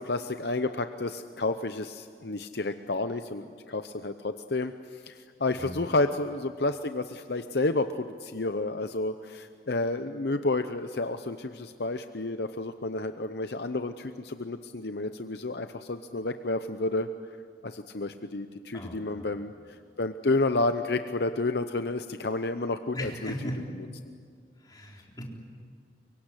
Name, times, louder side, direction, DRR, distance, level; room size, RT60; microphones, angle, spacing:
voice 1, 0.0-17.1 17.6-23.3, left 2 dB, 60° left, 9 dB, 0.8 m, -30 dB
voice 2, 5.6-5.9 18.7-19.3 22.9-23.6 24.6-25.2, equal, 20° left, -1 dB, 4.0 m, -38 dB
24.5 x 23.5 x 10.0 m, 2.1 s
head